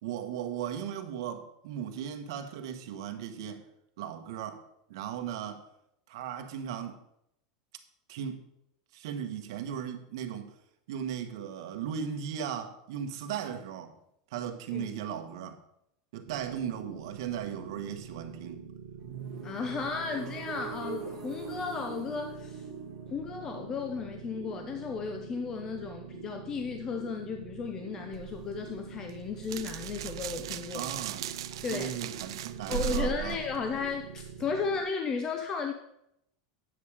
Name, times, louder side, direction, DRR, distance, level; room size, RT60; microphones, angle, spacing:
voice 1, 0.0-3.6 4.0-4.6 4.9-5.6 6.1-7.0 8.1-8.4 8.9-10.5 10.9-13.9 14.3-15.6 16.1-18.7 30.7-31.3 31.7-33.4, right 8 dB, 65° right, 1.3 m, -37 dB
sound 1, 16.3-34.8, right 7 dB, 50° right, 1.3 m, -45 dB
sound 2, 19.0-24.8, right 5 dB, 15° right, 2.8 m, -43 dB
voice 2, 19.4-22.6 23.1-30.9 31.6-31.9 32.7-35.7, left 5 dB, 20° left, 0.6 m, -34 dB
sound 3, 28.1-34.4, right 12 dB, 90° right, 0.5 m, -38 dB
9.6 x 7.2 x 4.9 m
supercardioid pair, 170°, 3 cm